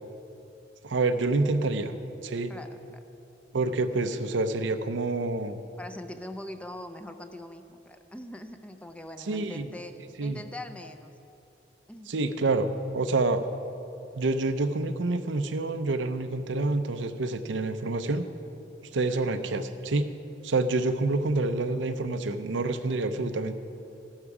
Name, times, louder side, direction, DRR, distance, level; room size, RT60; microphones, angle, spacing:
voice 1, 0.8-1.9 2.2-2.5 3.5-5.6 9.3-9.7 10.2-10.4 12.1-13.4 14.1-18.3 18.9-20.1 20.4-23.5, right 2 dB, 85° right, 9 dB, 0.7 m, -27 dB
voice 2, 2.5-3.0 5.8-11.1 11.9-12.2, left 1 dB, 5° left, 7 dB, 0.5 m, -42 dB
13.5 x 12.0 x 4.9 m, 2.8 s
head